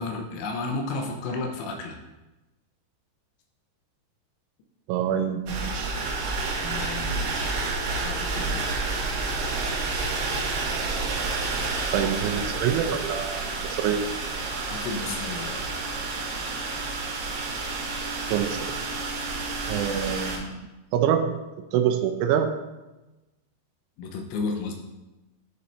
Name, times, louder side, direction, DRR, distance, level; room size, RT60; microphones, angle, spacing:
voice 1, 0.0-2.0 6.6-7.6 8.0-8.9 14.7-15.7 24.0-24.7, left 3 dB, 80° left, 3 dB, 3.2 m, -33 dB
voice 2, 4.9-5.9 11.9-14.0 18.3-18.6 19.7-21.4 21.7-22.5, right 9 dB, 90° right, 4 dB, 3.0 m, -26 dB
sound 1, 5.5-20.4, right 3 dB, 65° right, 2.3 m, -29 dB
9.8 x 4.1 x 4.2 m, 1.1 s
omnidirectional pair, 5.3 m